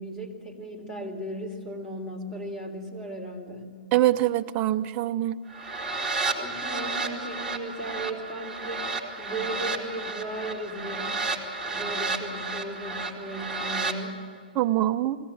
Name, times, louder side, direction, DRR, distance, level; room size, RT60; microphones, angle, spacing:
voice 1, 0.0-3.8 6.4-11.2 11.6-14.2, right 1 dB, 15° left, 1 dB, 3.5 m, -36 dB
voice 2, 3.9-5.4 14.5-15.2, right 14 dB, 30° right, 9 dB, 0.8 m, -24 dB
sound 1, 5.5-14.0, right 3 dB, 5° right, 2.6 m, -32 dB
21.5 x 17.0 x 8.7 m, 2.2 s
hypercardioid pair, 140°, 5 cm